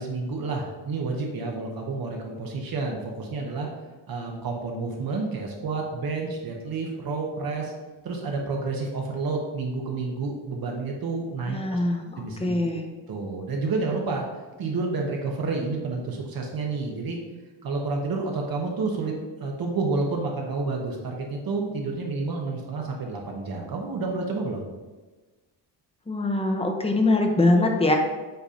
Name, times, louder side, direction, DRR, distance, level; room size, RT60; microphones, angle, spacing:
voice 1, 0.0-3.7 4.1-7.7 8.0-11.8 12.2-12.5 13.1-14.2 14.6-17.2 17.6-19.1 19.4-24.7, right 3 dB, 50° right, 0 dB, 0.9 m, -29 dB
voice 2, 11.5-12.8 26.1-27.9, left 2 dB, 15° left, 3 dB, 0.7 m, -23 dB
8.0 x 2.7 x 4.9 m, 1.2 s
wide cardioid pair, 170°, 44 cm